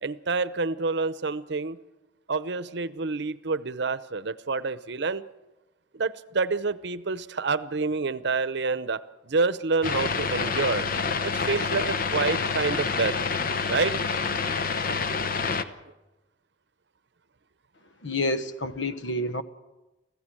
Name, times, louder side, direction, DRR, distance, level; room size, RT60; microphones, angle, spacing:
voice 1, 0.0-1.8 2.3-5.2 5.9-10.9 11.2-13.2 13.7-13.9, right 4 dB, 65° right, 15 dB, 0.8 m, -28 dB
sound 1, 9.8-15.6, left 5 dB, 50° left, 0.9 m, -27 dB
voice 2, 18.0-19.4, left 1 dB, 80° left, 11 dB, 1.1 m, -28 dB
24.5 x 15.5 x 7.7 m, 1.1 s
head